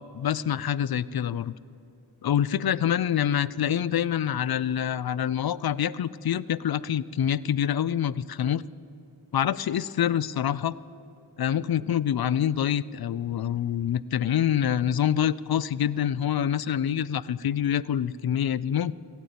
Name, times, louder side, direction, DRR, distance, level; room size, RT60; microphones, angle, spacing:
voice 1, 0.1-1.5 2.2-8.6 9.3-10.7 11.4-18.9, left 9 dB, 55° left, 18 dB, 0.5 m, -26 dB
15.5 x 9.1 x 8.6 m, 2.7 s
cardioid pair, 40°, 45 cm